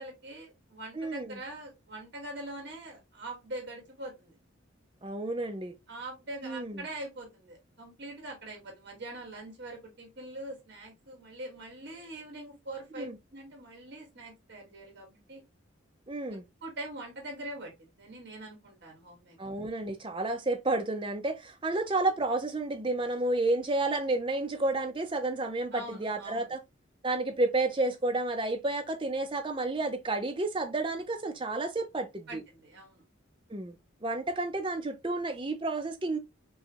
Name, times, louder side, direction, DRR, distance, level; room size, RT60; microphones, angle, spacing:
voice 1, 0.0-4.4 5.9-15.4 16.6-19.4 25.7-26.5 32.3-33.0, right 1 dB, 55° right, 2.0 m, -43 dB
voice 2, 0.9-1.4 5.0-5.7 6.4-6.9 13.0-13.2 16.1-16.4 19.4-26.6 27.0-32.4 33.5-36.2, right 2 dB, 25° right, 0.6 m, -31 dB
5.3 x 2.3 x 2.9 m
head